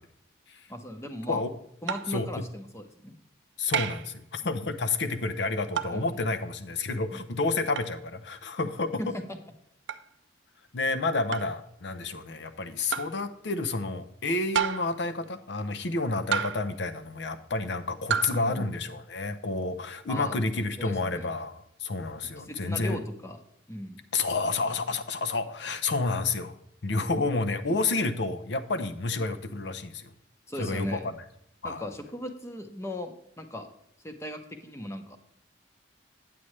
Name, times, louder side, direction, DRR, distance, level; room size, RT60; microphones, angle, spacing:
voice 1, 0.7-1.4 1.8-3.2 4.4-4.6 5.9-6.0 7.1-7.2 9.0-9.2 18.3-18.7 20.1-20.4 20.8-21.3 22.4-23.4 23.7-24.0 27.7-27.9 30.5-31.1 31.6-33.7 34.0-35.2, left 1 dB, 15° left, 5 dB, 0.8 m, -37 dB
sound 1, 1.9-2.2 3.7-4.1 5.8-6.0 7.7-7.9 9.9-10.1 11.3-11.6 12.9-13.2 14.5-15.0 16.3-16.8 18.1-18.4, right 8 dB, 70° right, 0.4 m, -30 dB
voice 2, 2.1-2.4 3.6-9.0 10.7-23.0 24.1-26.5 26.8-30.1 30.6-31.0 31.6-31.8, left 3 dB, 70° left, 8 dB, 0.7 m, -30 dB
8.7 x 8.4 x 3.2 m, 0.76 s
head